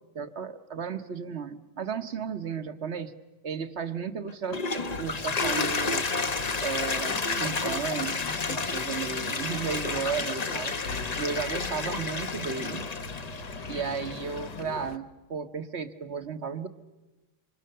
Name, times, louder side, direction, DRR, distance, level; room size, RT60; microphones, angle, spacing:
voice 1, 0.1-3.1 3.4-6.1 6.6-8.2 8.5-10.7 11.2-12.9 13.7-16.7, right 6 dB, 40° right, 9 dB, 1.1 m, -34 dB
Toilet flush, 4.3-14.6, left 4 dB, 40° left, 0.5 m, -31 dB
sound 1, 4.8-15.0, left 4 dB, 70° left, 1.8 m, -40 dB
29.0 x 26.0 x 6.8 m, 1.1 s
omnidirectional pair, 2.1 m